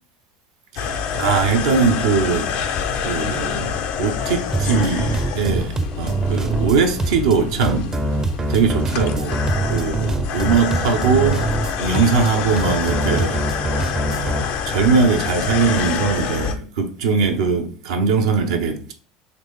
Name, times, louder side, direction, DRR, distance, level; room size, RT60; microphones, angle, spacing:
voice 1, 0.7-2.5 3.0-7.9 8.5-9.4 9.7-13.4 14.1-18.9, right 5 dB, 75° right, 0.6 m, -21 dB
sound 1, 0.8-16.5, left 6 dB, 55° left, 0.5 m, -26 dB
sound 2, 4.5-14.4, right 2 dB, 20° right, 0.5 m, -24 dB
3.9 x 3.0 x 3.5 m
hypercardioid pair, 75°, 3 cm